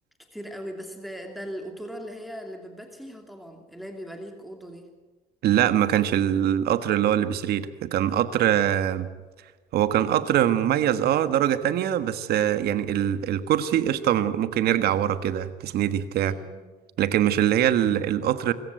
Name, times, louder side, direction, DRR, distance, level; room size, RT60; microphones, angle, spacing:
voice 1, 0.3-4.9 16.1-16.6, equal, ahead, 3 dB, 2.7 m, -39 dB
voice 2, 5.4-9.1 9.7-16.3 17.0-18.5, right 11 dB, 70° right, 11 dB, 1.5 m, -23 dB
24.0 x 14.5 x 9.3 m, 1.3 s
cardioid pair, 110°, 17 cm